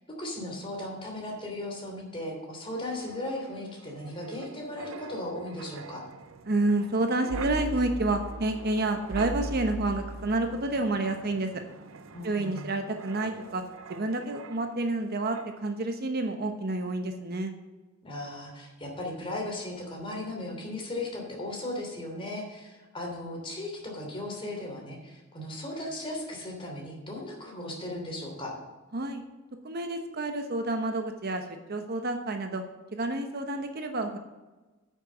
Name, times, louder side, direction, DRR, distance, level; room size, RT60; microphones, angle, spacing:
voice 1, 0.2-6.0 12.1-12.7 18.0-28.5, left 1 dB, 25° left, 0 dB, 3.1 m, -37 dB
Wind, 2.6-15.0 15.3-15.6, right 3 dB, 70° right, 0.6 m, -41 dB
voice 2, 6.4-11.6 12.2-13.6 13.9-17.5 28.9-29.2 29.6-32.6 32.9-34.2, right 2 dB, 50° right, 6 dB, 1.0 m, -29 dB
9.0 x 6.5 x 7.7 m, 1.2 s
head